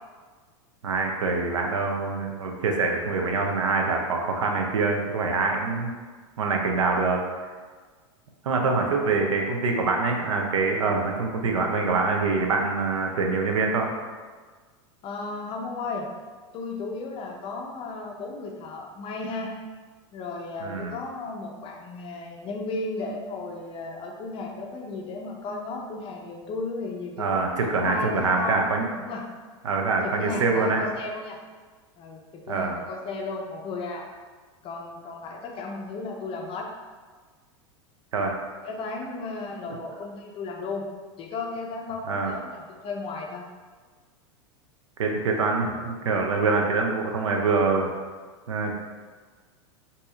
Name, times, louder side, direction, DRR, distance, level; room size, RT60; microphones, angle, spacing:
voice 1, 0.8-5.9 6.4-7.2 8.4-13.9 20.6-20.9 27.2-28.9 29.6-30.8 32.5-32.7 38.1-38.3 42.1-42.3 45.0-47.9 48.5-48.7, right 4 dB, 85° right, 2 dB, 0.5 m, -25 dB
voice 2, 15.0-16.1 16.5-19.5 20.1-28.7 29.0-29.2 30.0-31.4 32.0-34.1 34.6-36.7 38.6-40.9 41.2-43.5, left 3 dB, 35° left, 0 dB, 0.5 m, -34 dB
4.0 x 2.7 x 2.4 m, 1.4 s
hypercardioid pair, 100°, 16 cm